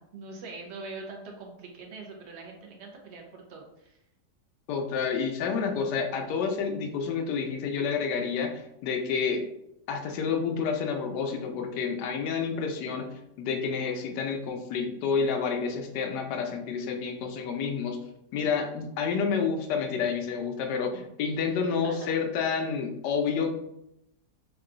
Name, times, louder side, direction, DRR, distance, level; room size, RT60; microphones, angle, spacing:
voice 1, 0.0-4.0 21.7-22.1, right 3 dB, 60° right, 1 dB, 0.7 m, -43 dB
voice 2, 4.7-9.4 9.9-13.1 13.4-18.0 18.3-23.5, left 5 dB, 75° left, 3 dB, 1.2 m, -29 dB
3.7 x 2.3 x 3.7 m, 0.82 s
omnidirectional pair, 1.9 m